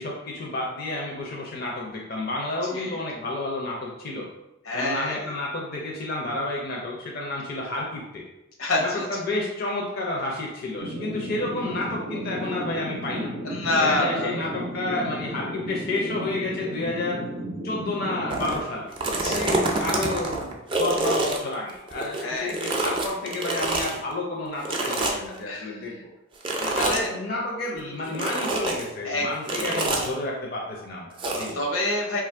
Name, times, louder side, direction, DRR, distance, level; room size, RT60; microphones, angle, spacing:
voice 1, 0.0-4.3 4.7-8.2 8.8-13.3 13.8-17.2 17.6-18.9 19.3-26.1 26.6-31.6, left 2 dB, 45° left, -2 dB, 0.5 m, -30 dB
voice 2, 4.6-5.2 8.6-9.1 13.4-14.6 19.2-19.6 22.2-22.6 24.7-25.2 25.5-25.8 26.6-27.1 27.7-28.2 29.0-29.9 31.5-32.2, left 2 dB, 85° left, -1 dB, 0.9 m, -28 dB
sound 1, 10.8-18.6, equal, 75° right, 0.5 m, -34 dB
sound 2, 18.3-18.6 18.9-22.2 22.5-24.0 24.6-25.4 26.4-27.1 28.1-28.8 29.5-30.1 31.2-31.5, right 2 dB, 25° right, 0.4 m, -26 dB
3.0 x 2.5 x 4.3 m, 0.96 s
head